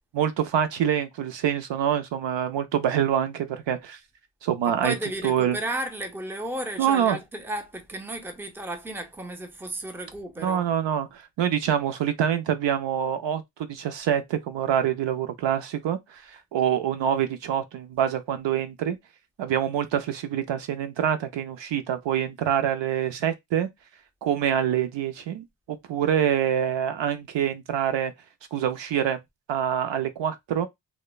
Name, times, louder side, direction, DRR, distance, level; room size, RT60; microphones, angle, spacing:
voice 1, 0.1-4.0 4.4-5.0 5.2-5.6 6.8-7.2 10.4-13.4 13.7-19.0 19.4-23.7 24.2-28.1 28.5-29.2 29.5-30.7, right 9 dB, 70° right, 0.5 m, -26 dB
voice 2, 4.6-10.7, right 1 dB, 5° right, 0.5 m, -33 dB
3.0 x 2.1 x 2.3 m
cardioid pair, 65°, 46 cm